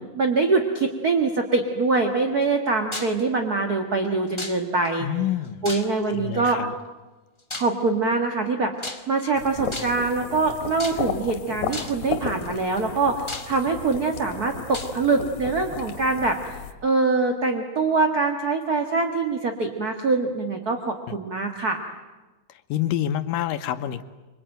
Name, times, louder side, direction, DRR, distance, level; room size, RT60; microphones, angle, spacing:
voice 1, 0.0-5.1 5.6-6.6 7.5-8.7 9.1-16.5 16.8-21.8, right 3 dB, 35° right, 4 dB, 1.6 m, -24 dB
sound 1, 2.9-3.2 4.4-4.9 5.6-6.2 7.5-7.8 8.8-9.3 9.7-10.1 10.8-11.3 11.7-12.1 12.8-12.9 13.3-13.9 14.7-15.0, left 2 dB, 20° left, 0.7 m, -35 dB
voice 2, 5.0-5.7 6.1-6.7 22.7-24.0, left 11 dB, 80° left, 10 dB, 2.7 m, -27 dB
sound 2, 9.3-16.7, left 7 dB, 60° left, 3.3 m, -34 dB
26.5 x 24.5 x 9.1 m, 1.2 s
omnidirectional pair, 3.9 m